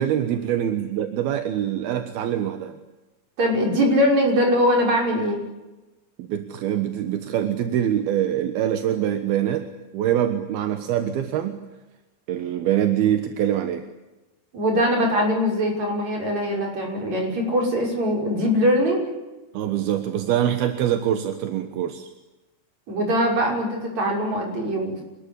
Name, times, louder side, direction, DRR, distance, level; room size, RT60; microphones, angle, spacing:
voice 1, 0.0-2.8 6.2-9.7 9.9-11.6 12.3-13.8 19.5-22.1, right 10 dB, 80° right, 8 dB, 3.3 m, -24 dB
voice 2, 3.4-5.4 14.5-19.1 22.9-25.0, equal, 45° right, 1 dB, 7.2 m, -22 dB
26.5 x 20.5 x 9.9 m, 1.1 s
omnidirectional pair, 4.4 m